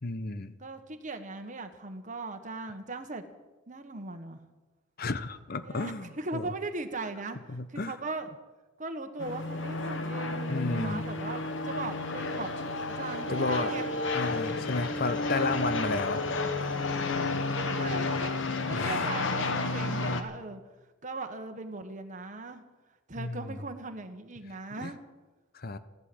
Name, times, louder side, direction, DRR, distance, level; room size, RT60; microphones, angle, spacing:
voice 1, 0.0-0.5 5.0-6.4 7.5-8.0 10.5-11.1 13.3-13.7 14.1-16.3 18.7-19.1 23.2-23.6 24.8-24.9 25.5-25.8, left 3 dB, 45° left, 13 dB, 0.8 m, -32 dB
voice 2, 0.6-3.2 3.7-4.4 5.6-8.3 8.8-12.5 12.9-13.9 17.3-18.4 18.7-20.6 21.0-22.6 23.1-25.0, right 3 dB, 40° right, 6 dB, 1.3 m, -39 dB
sound 1, 9.2-20.2, left 3 dB, 65° left, 1.2 m, -31 dB
14.5 x 12.0 x 7.8 m, 1.2 s
head